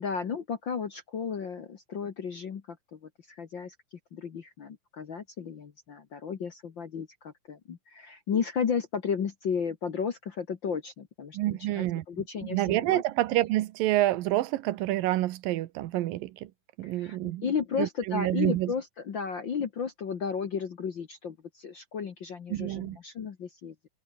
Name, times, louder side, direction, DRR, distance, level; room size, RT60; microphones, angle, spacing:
voice 1, 0.0-13.0 16.8-23.7, left 6 dB, 50° left, 1.5 m, -34 dB
voice 2, 11.3-12.0 12.5-16.5 16.8-17.5 17.8-18.7 22.5-23.0, right 15 dB, 85° right, 2.7 m, -28 dB
omnidirectional pair, 3.9 m